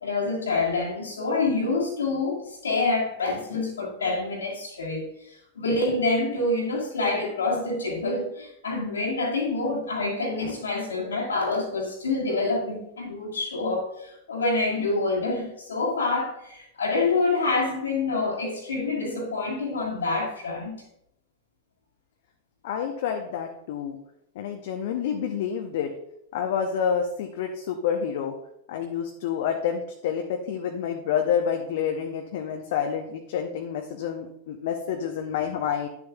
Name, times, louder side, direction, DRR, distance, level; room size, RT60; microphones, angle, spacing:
voice 1, 0.0-20.8, left 3 dB, 70° left, -1 dB, 1.7 m, -27 dB
voice 2, 22.6-24.0 24.3-25.9 26.3-28.3 28.7-35.9, left 8 dB, 55° left, 4 dB, 0.7 m, -28 dB
10.0 x 7.2 x 2.3 m, 0.78 s
figure-of-eight pair, 90°, 0 cm